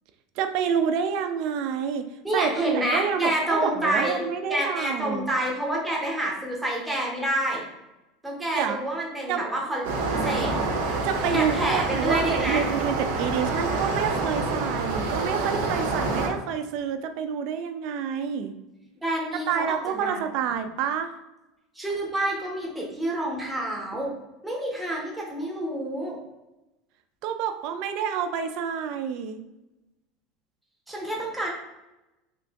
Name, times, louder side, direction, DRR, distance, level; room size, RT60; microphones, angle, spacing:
voice 1, 0.4-5.3 8.5-8.8 9.3-9.4 11.0-18.5 19.5-21.1 27.2-29.4, right 7 dB, 50° right, 8 dB, 0.3 m, -28 dB
voice 2, 2.2-4.2 4.5-7.6 8.2-10.5 11.3-12.6 19.0-20.2 21.8-24.1 24.4-26.2 30.9-31.5, right 1 dB, 5° right, -3 dB, 0.7 m, -28 dB
sound 1, 9.8-16.3, right 3 dB, 90° right, 0.6 m, -27 dB
2.9 x 2.6 x 3.4 m, 0.99 s
cardioid pair, 170°, 0 cm